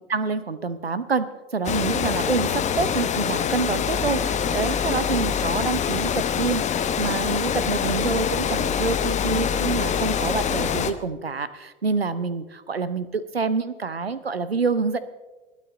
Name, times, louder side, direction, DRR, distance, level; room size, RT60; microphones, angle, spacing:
voice 1, 0.1-15.0, right 4 dB, 90° right, 15 dB, 0.8 m, -27 dB
Water, 1.6-10.9, left 8 dB, 25° left, 0.8 m, -25 dB
20.5 x 9.3 x 3.8 m, 1.2 s
figure-of-eight pair, 80°, 30 cm